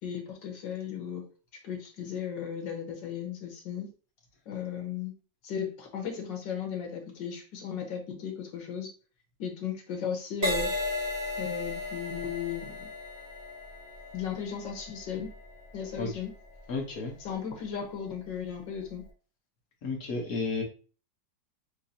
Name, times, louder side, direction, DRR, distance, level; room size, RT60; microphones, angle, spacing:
voice 1, 0.0-1.2 1.6-3.9 4.5-5.1 5.4-8.9 9.4-10.7 11.4-12.9 14.1-15.3 15.7-16.3 17.3-19.0, left 7 dB, 80° left, 3 dB, 1.8 m, -36 dB
Crash cymbal, 10.4-18.1 18.7-19.0, left 2 dB, 50° right, 1.7 m, -36 dB
voice 2, 16.7-17.1 19.8-20.6, left 3 dB, 55° left, 0 dB, 1.4 m, -32 dB
6.6 x 2.9 x 2.7 m, 0.38 s
omnidirectional pair, 1.9 m